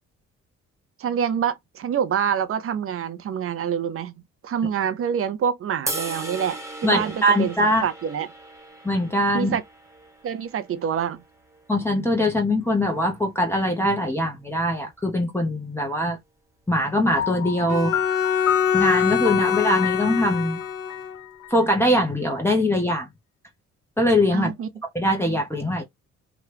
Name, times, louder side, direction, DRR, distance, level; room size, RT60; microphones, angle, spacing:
voice 1, 1.0-4.1 4.4-6.6 6.8-7.5 7.8-8.3 9.3-9.6 10.2-11.2 24.3-24.7, right 8 dB, 45° right, 0.5 m, -26 dB
sound 1, 5.9-12.1, right 2 dB, 10° right, 1.2 m, -37 dB
voice 2, 6.8-7.9 8.8-9.6 11.7-16.2 16.7-18.0 18.7-20.6 21.5-23.1 24.0-24.5 24.9-25.8, left 1 dB, 10° left, 0.9 m, -22 dB
Piano, 17.2-22.0, left 11 dB, 70° left, 0.5 m, -31 dB
Bowed string instrument, 17.7-21.2, left 8 dB, 55° left, 1.1 m, -24 dB
2.9 x 2.4 x 3.2 m
cardioid pair, 90°, 30 cm